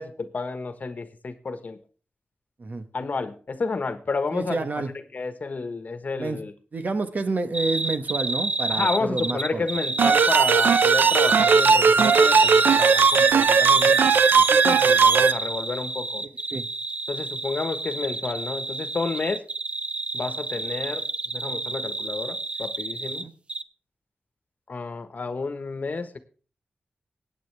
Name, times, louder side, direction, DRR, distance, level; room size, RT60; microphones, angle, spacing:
voice 1, 0.0-1.8 2.9-6.5 8.7-14.1 14.4-16.2 17.1-19.4 20.1-21.0 21.3-23.3 24.7-26.2, left 4 dB, 55° left, 10 dB, 1.3 m, -31 dB
voice 2, 4.3-4.9 6.2-6.4 6.7-9.6 16.5-16.7 23.2-23.3, right 3 dB, 55° right, 8 dB, 1.3 m, -29 dB
sound 1, 7.5-23.2 23.5-23.6, right 2 dB, 35° right, 0.6 m, -30 dB
sound 2, 10.0-15.3, right 5 dB, 85° right, 0.6 m, -17 dB
21.0 x 8.8 x 3.4 m, 0.38 s
cardioid pair, 70°, 3 cm